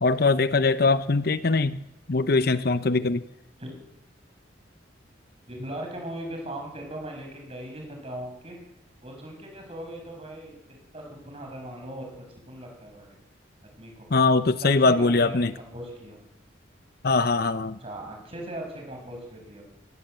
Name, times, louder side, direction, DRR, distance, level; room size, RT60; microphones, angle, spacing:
voice 1, 0.0-1.8 2.1-3.2 14.1-15.5 17.0-17.8, left 3 dB, 55° left, 13 dB, 0.8 m, -22 dB
voice 2, 5.5-8.6 9.0-10.6 10.9-13.2 13.8-14.1 14.6-16.2 17.8-19.6, right 1 dB, 30° right, 2 dB, 6.6 m, -39 dB
26.0 x 18.0 x 8.1 m, 0.92 s
head